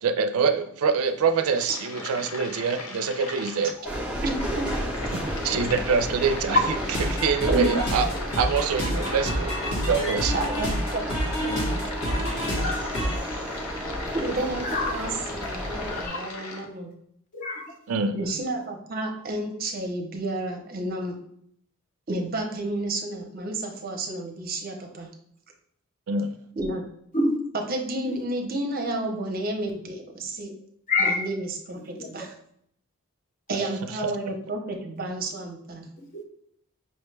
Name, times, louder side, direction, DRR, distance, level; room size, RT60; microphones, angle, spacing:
voice 1, 0.0-3.7 5.4-8.1 8.3-9.6 9.9-10.4 17.9-18.2 26.1-26.4 33.5-33.7, right 5 dB, 85° right, 8 dB, 0.4 m, -25 dB
sound 1, 1.1-16.7, left 3 dB, 75° left, 0.6 m, -38 dB
sound 2, 3.8-16.1, equal, 5° right, 0.6 m, -33 dB
voice 2, 4.2-4.7 5.1-5.5 7.5-7.7 10.3-11.0 11.4-11.9 14.1-17.0 18.1-21.2 22.1-25.1 26.6-26.8 27.5-30.5 31.0-32.3 33.5-35.9, right 2 dB, 45° right, 3 dB, 0.6 m, -31 dB
sound 3, 6.9-13.2, equal, 55° left, 1.6 m, -29 dB
voice 3, 12.5-12.9 14.6-15.0 15.9-16.2 17.3-17.7 27.1-27.3 28.1-28.2 30.9-31.3 34.0-34.1 36.1-36.2, left 2 dB, 35° left, 3 dB, 0.6 m, -27 dB
5.4 x 2.2 x 3.2 m, 0.67 s
head